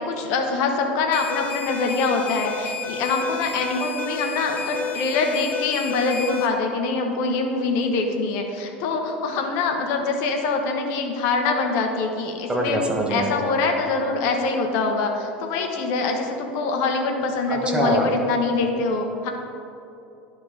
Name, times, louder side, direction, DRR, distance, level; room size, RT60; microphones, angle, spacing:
voice 1, 0.0-12.8 13.1-19.3, left 3 dB, 60° left, 3 dB, 1.0 m, -24 dB
sound 1, 1.1-6.5, left 4 dB, 30° left, 1.0 m, -31 dB
voice 2, 12.5-13.3 17.5-18.1, right 1 dB, 15° right, 0 dB, 1.3 m, -24 dB
11.5 x 3.8 x 3.7 m, 2.8 s
hypercardioid pair, 80°, 6 cm